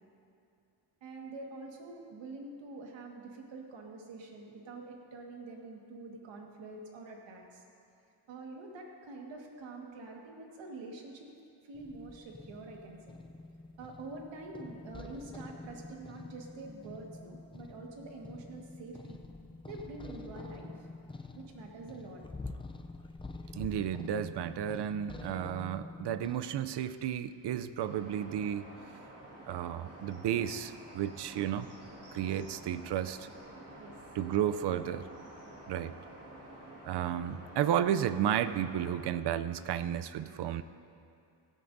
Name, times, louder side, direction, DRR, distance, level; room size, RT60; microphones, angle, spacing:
voice 1, 1.0-7.6 8.3-11.3 11.6-13.0 13.8-19.2 19.6-20.9 21.3-22.2 33.7-34.2, right 3 dB, 80° right, 0 dB, 1.7 m, -46 dB
sound 1, 11.7-26.4, left 3 dB, 10° left, 0.4 m, -47 dB
voice 2, 23.5-28.7 29.5-31.7 32.1-33.3 34.1-35.0 35.7-35.9 36.8-40.6, right 10 dB, 65° right, 13 dB, 0.6 m, -32 dB
sound 2, 27.8-39.1, right 1 dB, 35° right, 2.0 m, -50 dB
16.0 x 13.0 x 2.6 m, 2.5 s
cardioid pair, 120°, 44 cm